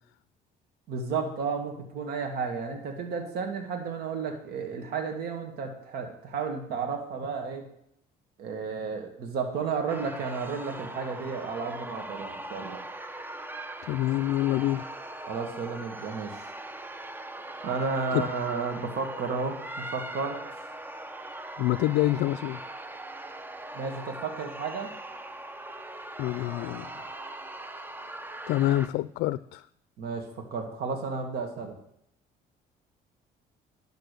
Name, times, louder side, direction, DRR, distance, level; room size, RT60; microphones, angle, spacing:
voice 1, 0.9-7.6 8.4-12.8 15.3-16.4 17.6-20.4 23.7-24.9 30.0-31.8, right 5 dB, 70° right, 3 dB, 2.0 m, -32 dB
sound 1, 9.9-28.9, right 1 dB, 10° right, 0.8 m, -40 dB
voice 2, 13.8-14.9 18.1-18.2 21.6-22.6 26.2-26.9 28.5-29.7, left 15 dB, 85° left, 16 dB, 0.4 m, -26 dB
11.5 x 6.6 x 6.8 m, 0.73 s
cardioid pair, 110°, 17 cm